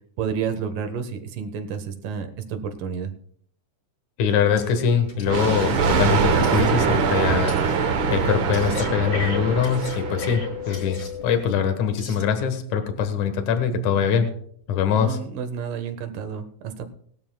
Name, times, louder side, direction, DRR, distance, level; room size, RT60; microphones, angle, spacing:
voice 1, 0.2-3.1 15.0-16.9, right 7 dB, 90° right, 8 dB, 2.9 m, -30 dB
voice 2, 4.2-7.9 8.1-14.3 14.7-15.2, left 7 dB, 65° left, 7 dB, 2.7 m, -23 dB
Breathing, 4.6-4.7 5.1-11.5 12.1-12.2, left 6 dB, 30° left, 1.2 m, -35 dB
sound 1, 5.2-5.7 6.4-6.7 7.5-7.8 8.5-8.8 9.6-10.0 10.7-11.1 12.0-12.2, left 3 dB, 50° left, 6.7 m, -44 dB
Thunder, 5.3-10.6, right 5 dB, 60° right, 1.3 m, -23 dB
20.0 x 12.5 x 2.3 m, 0.63 s
omnidirectional pair, 3.7 m